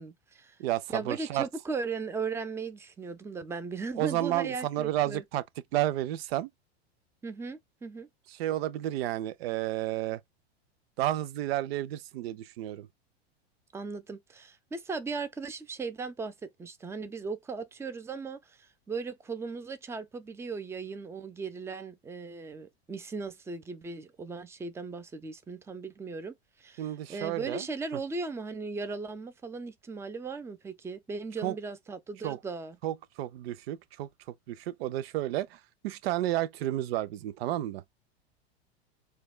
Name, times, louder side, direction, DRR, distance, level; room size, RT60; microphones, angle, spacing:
voice 1, 0.0-0.6 0.9-5.2 7.2-8.1 13.7-16.3 16.6-32.8, right 4 dB, 10° right, 0.5 m, -37 dB
voice 2, 0.6-1.4 4.0-5.4 5.7-6.5 8.3-10.2 11.0-12.9 26.8-27.7 31.4-31.5 32.2-32.4 32.8-34.1 34.5-35.6 35.8-37.8, right 14 dB, 70° right, 0.5 m, -31 dB
6.4 x 2.3 x 2.2 m
hypercardioid pair, 105°, 31 cm